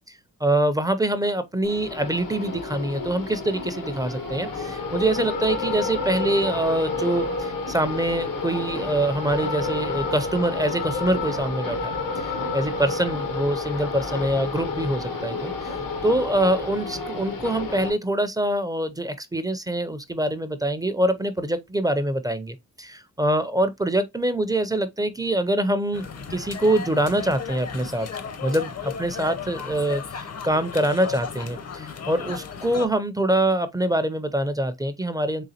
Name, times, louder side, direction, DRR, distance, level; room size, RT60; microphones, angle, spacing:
voice 1, 0.1-15.7 16.0-28.1 28.4-35.4, right 1 dB, 10° right, 0.4 m, -25 dB
sound 1, 1.6-17.9, left 3 dB, 90° left, 1.2 m, -30 dB
sound 2, 25.9-32.9, left 6 dB, 50° left, 0.7 m, -35 dB
3.8 x 3.5 x 2.7 m
wide cardioid pair, 115°, 32 cm